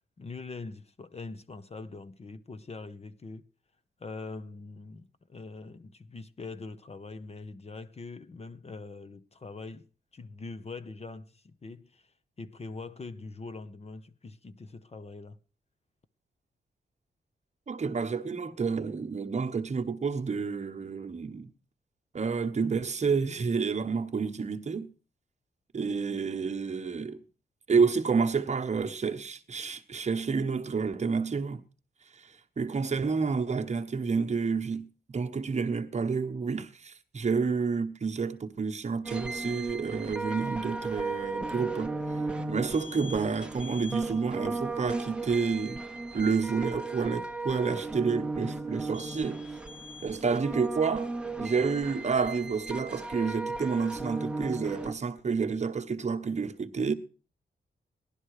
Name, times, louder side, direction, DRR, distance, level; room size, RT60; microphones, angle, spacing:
voice 1, 0.2-3.5 4.0-9.9 10.1-12.1 12.4-15.4, left 3 dB, 35° left, 0.8 m, -43 dB
voice 2, 17.7-21.5 22.1-24.9 25.7-27.2 27.7-31.6 32.1-41.9 42.5-45.8 46.1-49.4 50.0-51.1 51.4-56.9, right 5 dB, 40° right, 1.1 m, -29 dB
sound 1, 39.0-54.9, right 3 dB, 5° right, 1.0 m, -36 dB
17.5 x 11.5 x 4.9 m
wide cardioid pair, 135°, 18 cm